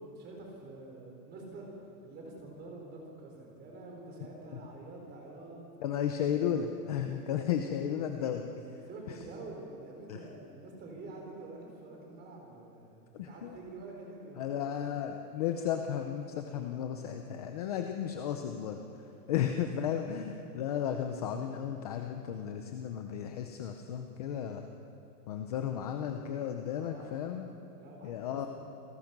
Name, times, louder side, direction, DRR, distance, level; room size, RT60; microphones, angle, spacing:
voice 1, 0.0-1.7 2.0-5.6 8.9-14.7 19.2-19.3 26.7-27.2 27.8-28.4, right 2 dB, 20° right, 0 dB, 4.6 m, -47 dB
voice 2, 5.8-8.5 10.1-10.2 13.2-13.5 14.4-18.8 19.3-24.7 25.3-27.5 28.0-28.5, left 9 dB, 25° left, 5 dB, 0.6 m, -34 dB
29.0 x 18.5 x 6.0 m, 2.7 s
supercardioid pair, 170°, 49 cm